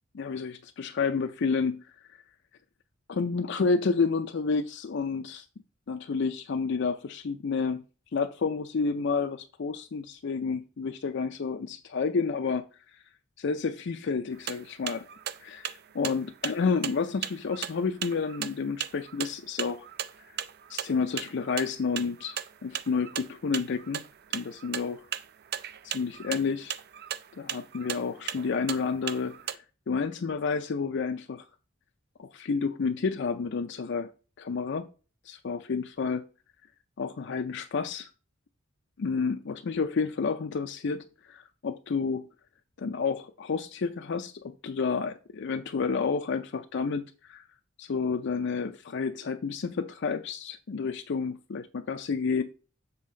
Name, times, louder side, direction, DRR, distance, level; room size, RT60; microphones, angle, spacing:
voice 1, 0.1-1.8 3.1-5.5 5.9-7.8 8.1-12.6 13.4-15.0 15.4-19.8 20.7-24.0 24.3-25.0 25.8-26.7 27.4-29.6 29.9-31.4 32.2-34.1 34.4-34.9 35.2-36.2 37.0-38.1 39.0-42.2 42.8-47.5 47.8-52.4, left 5 dB, 60° left, 0.5 m, -30 dB
sound 1, 14.3-29.5, right 10 dB, 50° right, 0.4 m, -37 dB
7.3 x 4.1 x 3.7 m
head